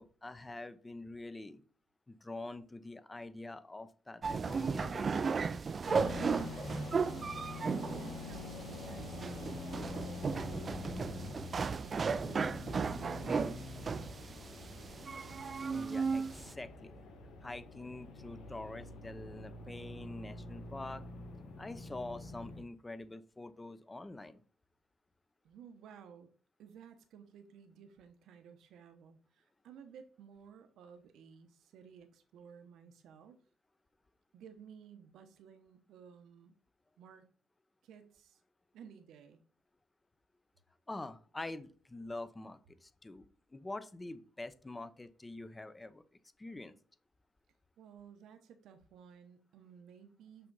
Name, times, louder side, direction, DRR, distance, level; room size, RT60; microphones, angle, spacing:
voice 1, 0.0-1.6 2.1-5.4 15.7-16.9 17.4-21.0 21.6-24.4 40.9-46.0 46.4-46.8, left 2 dB, 20° left, 12 dB, 0.8 m, -45 dB
sound 1, 4.2-16.5, right 5 dB, 40° right, 0.4 m, -35 dB
sound 2, 5.9-22.6, left 3 dB, 80° left, 1.5 m, -46 dB
voice 2, 6.0-9.3 9.7-12.7 13.0-13.6 25.4-26.3 26.6-33.4 34.3-36.6 37.0-37.2 37.8-38.4 38.7-39.4 47.8-50.5, right 7 dB, 80° right, 8 dB, 0.9 m, -56 dB
5.8 x 5.7 x 4.0 m, 0.41 s
cardioid pair, 90°, 0 cm